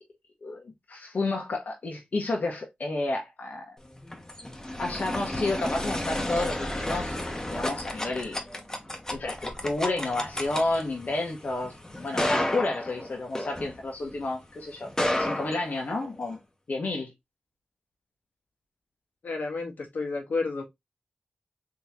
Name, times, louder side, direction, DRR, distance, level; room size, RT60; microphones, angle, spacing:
voice 1, 0.4-3.8 4.8-8.4 9.1-14.9 15.2-16.4 16.7-17.1, left 2 dB, 70° left, 0.9 m, -31 dB
sound 1, 3.9-14.2 14.8-16.3, left 1 dB, 20° left, 0.9 m, -32 dB
voice 2, 19.2-20.6, left 3 dB, 90° left, 1.2 m, -31 dB
3.5 x 2.9 x 2.8 m
cardioid pair, 55°, 3 cm